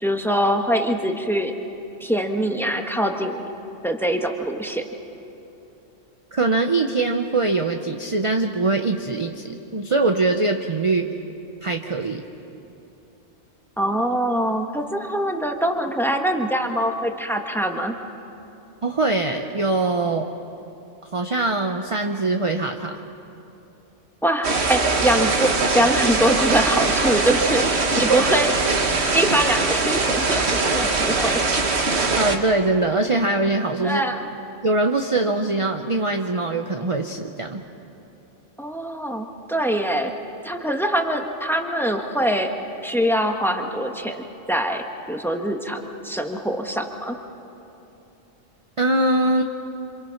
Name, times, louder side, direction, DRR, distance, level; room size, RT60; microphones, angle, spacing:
voice 1, 0.0-1.5 2.0-3.5 3.8-4.9 13.8-17.9 24.2-28.8 29.1-31.4 33.8-34.3 38.6-40.1 40.4-42.5 42.8-47.2, right 1 dB, ahead, 3 dB, 1.3 m, -23 dB
voice 2, 6.3-11.1 11.6-12.2 18.8-20.3 21.1-23.0 28.1-28.2 32.2-34.0 34.6-37.6 48.8-49.4, right 2 dB, 30° right, 5 dB, 0.8 m, -22 dB
sound 1, 24.4-32.4, right 3 dB, 65° right, 1.6 m, -21 dB
27.5 x 26.5 x 5.9 m, 2.9 s
omnidirectional pair, 1.2 m